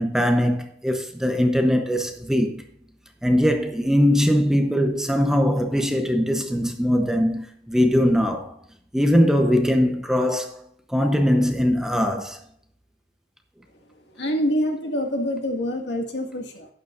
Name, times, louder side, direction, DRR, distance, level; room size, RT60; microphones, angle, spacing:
voice 1, 0.0-2.6 3.2-8.6 8.9-10.6 10.9-12.4, equal, 5° right, 0.8 m, -21 dB
voice 2, 14.2-16.7, equal, 65° left, 2.0 m, -26 dB
12.0 x 9.6 x 2.5 m
head